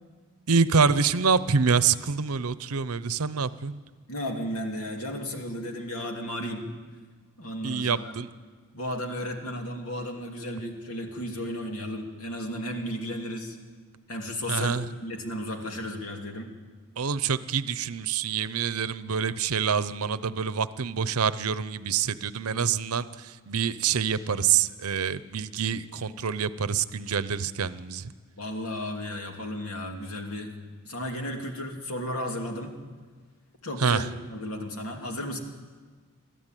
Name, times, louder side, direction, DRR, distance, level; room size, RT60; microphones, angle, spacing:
voice 1, 0.5-3.8 7.6-8.3 14.5-14.9 17.0-23.1 23.5-28.1 33.8-34.0, right 6 dB, 90° right, 15 dB, 0.7 m, -26 dB
voice 2, 4.1-6.7 7.4-8.1 8.7-13.6 14.1-16.5 28.4-30.5 30.8-32.8 33.6-35.4, left 1 dB, 80° left, 2 dB, 2.8 m, -34 dB
23.0 x 14.0 x 9.1 m, 1.5 s
head